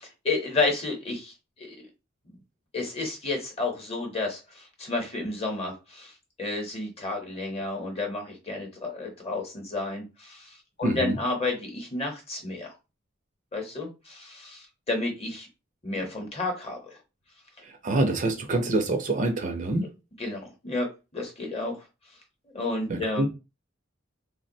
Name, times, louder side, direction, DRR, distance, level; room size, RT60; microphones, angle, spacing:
voice 1, 0.2-1.8 2.3-2.4 2.7-12.7 13.5-15.5 15.8-17.0 20.2-21.9 22.5-23.3, left 2 dB, 30° left, 0.8 m, -31 dB
voice 2, 10.8-11.2 17.8-19.9 22.9-23.3, right 2 dB, 40° right, 0.5 m, -26 dB
3.2 x 2.1 x 2.6 m
head